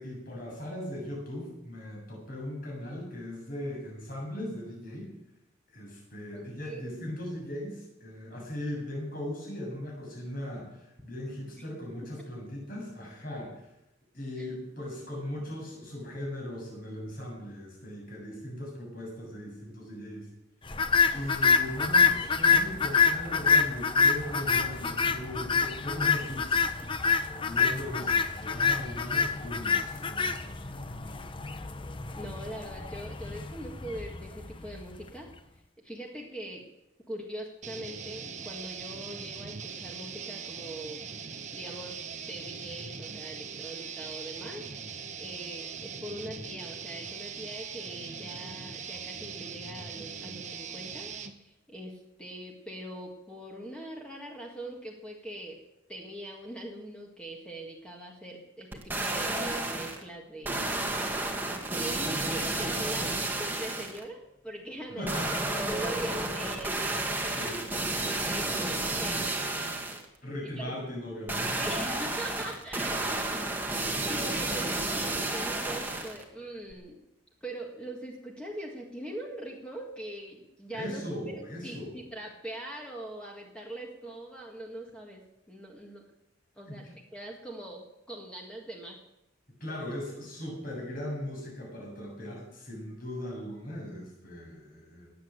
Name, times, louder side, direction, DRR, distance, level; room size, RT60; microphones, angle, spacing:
voice 1, 0.0-5.1 5.7-13.7 14.1-20.3 21.1-26.9 27.2-31.2 64.9-65.8 67.4-68.4 70.2-71.8 80.7-82.0 86.7-87.0 89.6-95.1, left 1 dB, 45° left, -2 dB, 7.5 m, -39 dB
voice 2, 6.3-6.8 11.6-11.7 14.4-14.5 32.1-35.3 35.8-36.7 37.1-41.0 41.5-55.6 55.9-60.7 61.6-65.2 65.6-67.6 68.1-68.7 69.0-70.0 70.6-70.7 71.4-77.0 77.4-81.1 81.6-86.0 86.6-86.8 87.1-89.0, right 1 dB, 5° left, -1 dB, 1.9 m, -42 dB
sound 1, 20.7-35.0, left 5 dB, 25° left, 0.7 m, -27 dB
sound 2, 37.6-51.3, right 6 dB, 35° right, 1.0 m, -41 dB
sound 3, 58.7-60.0 60.4-64.0 65.1-70.0 71.3-76.2 76.7-76.8, right 2 dB, 10° right, 1.7 m, -31 dB
19.5 x 8.6 x 7.7 m, 0.89 s
head